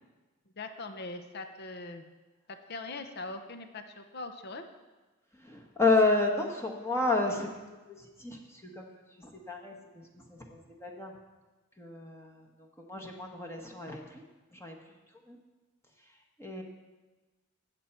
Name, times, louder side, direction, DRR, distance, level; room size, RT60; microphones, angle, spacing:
voice 1, 0.5-2.0 2.5-4.6, left 3 dB, 50° left, 7 dB, 0.8 m, -41 dB
voice 2, 5.3-8.9 9.2-11.1 11.8-14.2 14.5-15.0 15.3-15.4 16.4-16.6, left 3 dB, 15° left, 1 dB, 1.2 m, -31 dB
17.5 x 7.0 x 4.5 m, 1.2 s
head